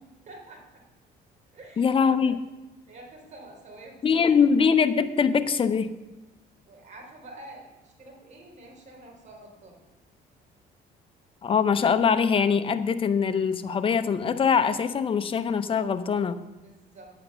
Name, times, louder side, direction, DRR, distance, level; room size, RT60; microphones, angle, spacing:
voice 1, 0.3-0.8 1.5-2.0 2.2-2.3 2.9-4.5 6.7-9.8 16.6-17.1, right 2 dB, 45° right, 0 dB, 3.8 m, -47 dB
voice 2, 1.8-2.4 4.0-5.9 11.4-16.4, left 6 dB, 30° left, 10 dB, 0.8 m, -23 dB
8.8 x 8.7 x 6.9 m, 1.1 s
cardioid pair, 110°, 17 cm